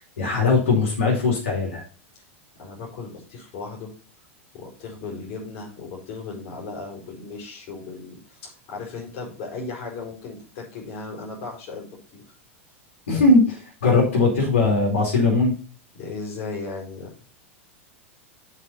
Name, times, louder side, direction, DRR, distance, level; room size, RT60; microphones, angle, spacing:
voice 1, 0.2-1.8 13.1-15.5, left 3 dB, 75° left, -3 dB, 4.4 m, -20 dB
voice 2, 2.6-3.9 4.5-11.9 12.1-12.2 15.9-17.1, left 4 dB, 50° left, -1 dB, 4.8 m, -36 dB
7.6 x 6.3 x 5.4 m, 0.37 s
hypercardioid pair, 95°, 7 cm